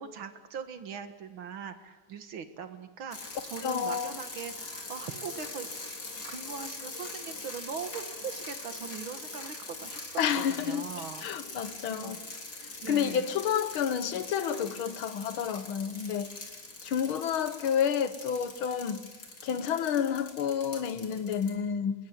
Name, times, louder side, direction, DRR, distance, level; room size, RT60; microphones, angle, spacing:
voice 1, 0.0-5.7 6.3-10.1 10.3-11.3 11.9-12.2 12.8-13.2, right 6 dB, 75° right, 2.4 m, -41 dB
sound 1, 3.1-21.5, left 3 dB, 50° left, 4.1 m, -43 dB
voice 2, 3.6-4.1 10.2-10.9 11.2-12.3 12.9-16.5 16.8-19.0 19.4-21.9, left 8 dB, 80° left, 2.1 m, -30 dB
27.0 x 21.0 x 9.4 m
omnidirectional pair, 2.2 m